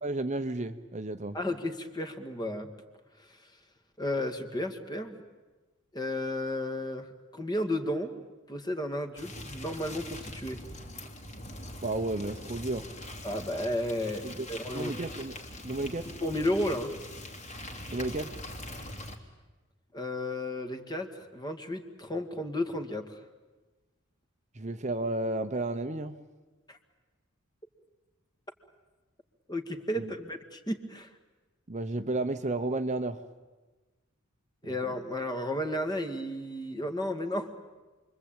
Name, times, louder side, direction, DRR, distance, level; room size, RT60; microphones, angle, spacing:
voice 1, 0.0-1.4 11.8-12.9 14.2-15.4 15.6-16.1 17.9-18.4 24.5-26.2 30.0-30.1 31.7-33.2 34.6-34.7, right 2 dB, 35° right, 8 dB, 0.9 m, -32 dB
voice 2, 1.3-2.7 4.0-5.2 5.9-8.1 8.5-10.6 13.2-14.9 16.2-16.9 19.9-23.2 26.7-26.8 29.5-31.1 34.6-37.5, left 1 dB, 20° left, 6 dB, 2.1 m, -33 dB
sound 1, 9.2-19.2, left 1 dB, 35° left, 3.0 m, -42 dB
29.0 x 23.0 x 9.0 m, 1.2 s
head